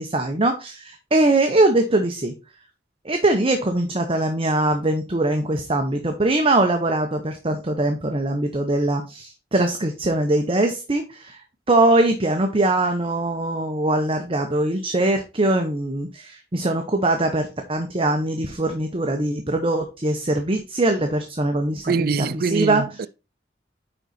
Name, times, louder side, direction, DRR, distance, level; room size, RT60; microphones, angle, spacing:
voice 1, 0.0-2.3 3.0-11.4 11.7-22.8, right 2 dB, 30° right, 0.9 m, -22 dB
voice 2, 21.8-23.1, right 5 dB, 55° right, 0.4 m, -24 dB
9.8 x 4.1 x 4.2 m
head